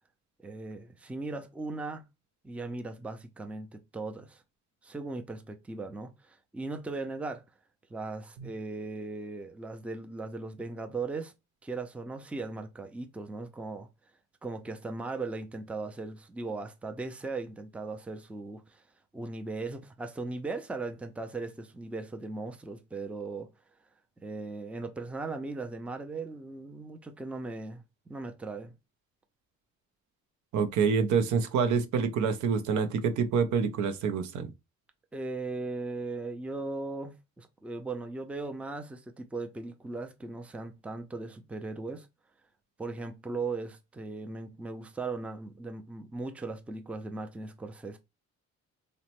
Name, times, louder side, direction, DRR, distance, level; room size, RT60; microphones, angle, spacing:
voice 1, 0.4-2.1 2.4-4.4 4.8-7.4 7.9-11.3 11.6-13.9 14.4-18.8 19.1-23.5 24.2-27.8 28.1-28.7 35.1-42.1 42.8-48.0, right 3 dB, 5° right, 0.4 m, -38 dB
voice 2, 30.5-34.5, right 6 dB, 70° right, 0.6 m, -27 dB
2.9 x 2.1 x 2.9 m
cardioid pair, 90°, 30 cm